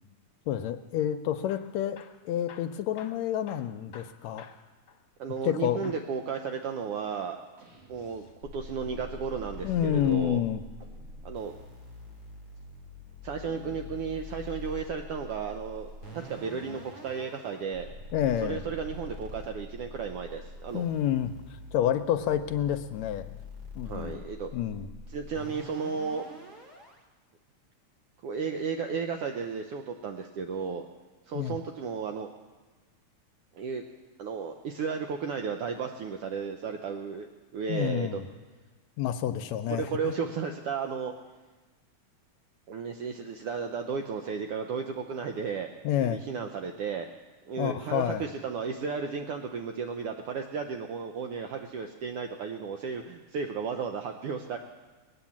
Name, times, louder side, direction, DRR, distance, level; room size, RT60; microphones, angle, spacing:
voice 1, 0.5-2.0 2.2-4.5 5.4-5.9 9.6-10.6 18.1-18.6 20.7-21.3 21.7-23.2 23.8-24.2 24.5-24.9 31.3-31.6 37.7-38.2 39.0-39.9 45.8-46.2 47.6-48.2, left 10 dB, 75° left, 9 dB, 1.7 m, -28 dB
Hammer / Drill, 1.5-5.6 5.8-6.1 7.0-8.4 10.1-11.4 13.1-13.5 14.3-15.1 15.8-16.0 16.3-16.4 17.0-17.1, left 7 dB, 55° left, 1.5 m, -55 dB
voice 2, 5.2-7.4 7.9-8.2 8.5-10.4 11.2-11.5 13.2-17.9 18.2-20.8 23.8-24.5 25.1-26.3 28.2-30.9 31.3-32.3 33.5-33.8 34.2-37.3 37.5-38.2 39.7-41.1 42.7-45.7 46.0-47.1 47.5-54.6, right 6 dB, 75° right, 4 dB, 1.4 m, -34 dB
sound 1, 7.6-8.9 10.8-11.9 13.4-14.5 16.1-18.8, equal, 60° right, 2.6 m, -56 dB
sound 2, 8.4-27.0, left 2 dB, 35° right, 2.2 m, -45 dB
20.5 x 9.1 x 7.2 m, 1.3 s
omnidirectional pair, 3.4 m